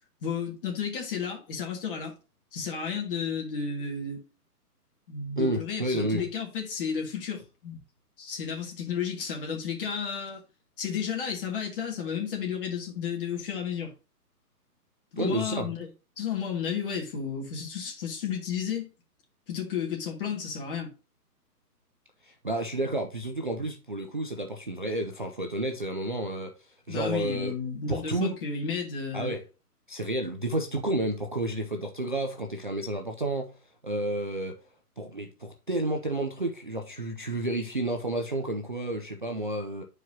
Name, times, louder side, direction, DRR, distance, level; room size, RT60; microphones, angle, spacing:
voice 1, 0.2-2.1 2.5-4.2 5.1-7.8 8.2-10.4 10.8-13.9 15.1-15.9 16.2-18.9 19.5-20.9 26.9-29.3, left 6 dB, 35° left, 2.0 m, -32 dB
voice 2, 5.4-6.2 15.2-15.7 22.2-26.5 26.9-27.5 27.9-28.4 29.1-29.4 29.9-33.5 33.8-34.5 35.0-39.8, right 1 dB, 35° right, 0.4 m, -30 dB
10.5 x 4.7 x 2.8 m
hypercardioid pair, 155°, 47 cm